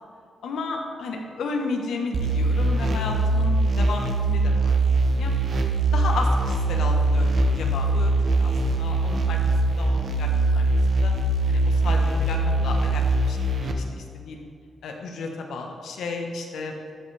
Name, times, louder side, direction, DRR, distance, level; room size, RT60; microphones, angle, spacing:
voice 1, 0.4-4.8 5.1-5.3 5.9-9.4 9.6-10.6 10.9-11.1 11.5-14.4 14.8-16.8, left 3 dB, 85° left, 2 dB, 1.2 m, -33 dB
sound 1, 2.1-13.7, right 2 dB, 45° right, 0.8 m, -22 dB
13.0 x 6.7 x 3.4 m, 2.3 s
wide cardioid pair, 160°, 0 cm